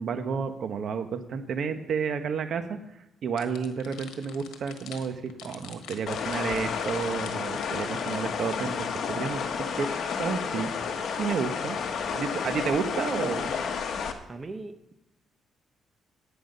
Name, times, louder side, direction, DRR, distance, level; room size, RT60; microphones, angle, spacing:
voice 1, 0.0-2.8 3.2-10.7 11.1-11.8 12.1-13.5, right 6 dB, 60° right, 8 dB, 1.2 m, -31 dB
sound 1, 3.4-8.4, left 9 dB, 90° left, 1.3 m, -46 dB
sound 2, 6.1-14.1, left 6 dB, 60° left, 1.3 m, -31 dB
voice 2, 11.7-12.3 14.3-15.0, right 3 dB, 30° right, 8 dB, 1.0 m, -42 dB
11.5 x 9.2 x 5.5 m, 0.93 s
cardioid pair, 90°, 0 cm